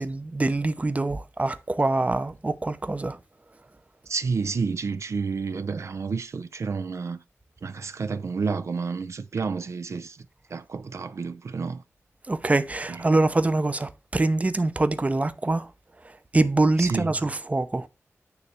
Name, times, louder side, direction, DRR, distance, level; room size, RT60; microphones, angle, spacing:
voice 1, 0.0-3.2 12.3-15.7 16.0-17.9, right 2 dB, 25° right, 0.7 m, -24 dB
voice 2, 4.1-7.2 7.6-11.8 12.9-13.3 16.8-17.2, right 5 dB, 70° right, 0.5 m, -30 dB
9.4 x 3.3 x 6.8 m
wide cardioid pair, 65°, 5 cm